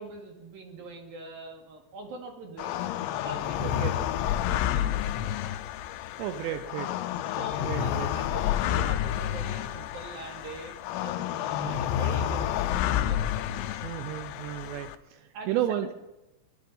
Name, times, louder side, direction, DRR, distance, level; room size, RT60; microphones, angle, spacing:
voice 1, 0.0-4.1 4.4-5.3 6.5-6.6 7.3-13.6 15.3-15.9, right 3 dB, 55° right, 1 dB, 3.4 m, -43 dB
sound 1, 2.6-15.0, left 11 dB, 80° left, 2.7 m, -30 dB
voice 2, 3.6-3.9 6.2-6.9 7.6-8.1 11.6-11.8 13.8-15.9, right 11 dB, 85° right, 8 dB, 2.5 m, -33 dB
22.0 x 11.5 x 5.5 m, 1.0 s
omnidirectional pair, 5.9 m